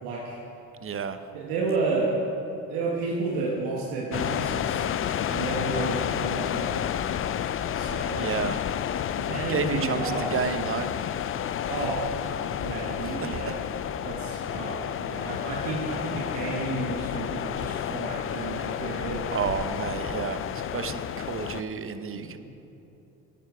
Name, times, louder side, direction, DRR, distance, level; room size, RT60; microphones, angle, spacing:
voice 1, 0.0-0.4 1.3-2.2 2.7-4.9 5.3-6.9 7.7-8.3 9.1-10.4 11.7-12.1 12.6-13.6 14.0-19.3 22.1-22.4, right 3 dB, 85° right, -3 dB, 1.4 m, -31 dB
voice 2, 0.8-1.2 8.1-8.7 9.5-10.9 13.2-13.5 19.3-22.4, right 6 dB, 30° right, 11 dB, 0.7 m, -31 dB
sound 1, 4.1-21.6, left 9 dB, 30° left, 0.4 m, -30 dB
11.0 x 9.0 x 4.8 m, 3.0 s
supercardioid pair, 65°, 43 cm